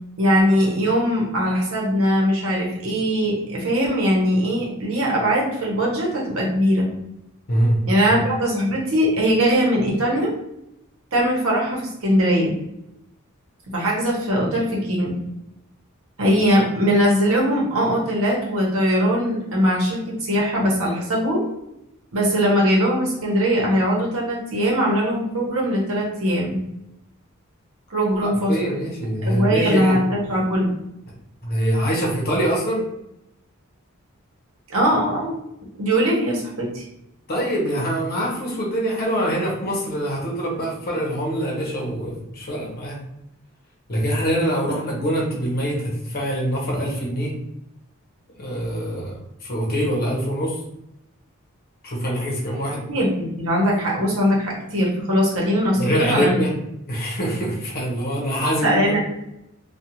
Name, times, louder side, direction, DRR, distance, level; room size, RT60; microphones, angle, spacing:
voice 1, 0.2-6.9 7.8-10.3 11.1-12.5 13.7-15.2 16.2-21.5 22.1-26.6 27.9-28.7 29.2-30.7 34.7-35.3 35.8-36.8 52.9-56.4 58.6-59.0, equal, 70° right, -3 dB, 0.9 m, -21 dB
voice 2, 28.2-30.0 31.4-32.9 37.3-43.0 43.9-47.3 48.4-50.6 51.8-52.8 55.8-56.5 56.9-59.0, equal, 45° left, -2 dB, 0.9 m, -24 dB
2.4 x 2.3 x 2.9 m, 0.83 s
head